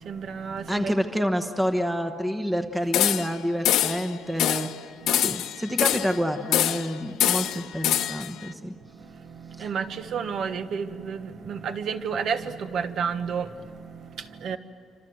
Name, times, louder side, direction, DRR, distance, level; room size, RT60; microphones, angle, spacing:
voice 1, 0.0-1.3 5.0-5.8 7.4-7.5 8.9-14.6, right 6 dB, 55° right, 1.4 m, -32 dB
voice 2, 0.7-4.7 5.1-8.7 9.6-9.7, equal, 5° right, 1.1 m, -28 dB
sound 1, 2.9-3.4 3.6-4.0 4.4-4.7 5.1-6.2 6.5-6.9 7.2-8.3, left 11 dB, 90° left, 1.2 m, -24 dB
28.0 x 26.5 x 7.8 m
cardioid pair, 150°, 0 cm